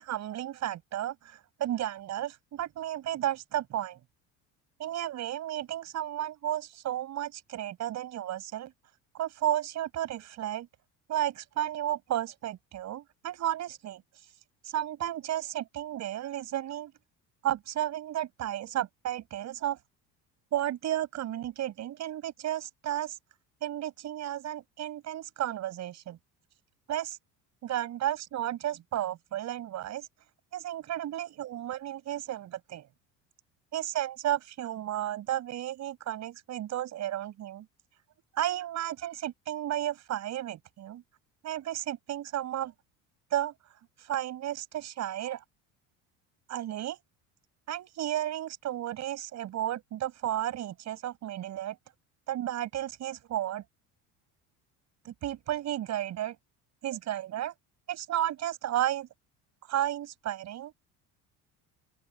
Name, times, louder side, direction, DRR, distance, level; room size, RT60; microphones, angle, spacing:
voice 1, 0.0-4.0 4.8-8.7 9.1-10.7 11.1-14.3 14.6-16.9 17.4-19.8 20.5-23.2 23.6-26.2 26.9-27.2 27.6-30.1 30.5-32.9 33.7-37.7 38.3-41.0 41.4-42.7 43.3-45.4 46.5-47.0 47.7-51.8 52.3-53.6 55.0-56.4 56.8-57.5 57.9-59.1 59.6-60.7, right 12 dB, 50° right, 6.4 m, -33 dB
open air
cardioid pair, 135°, 35 cm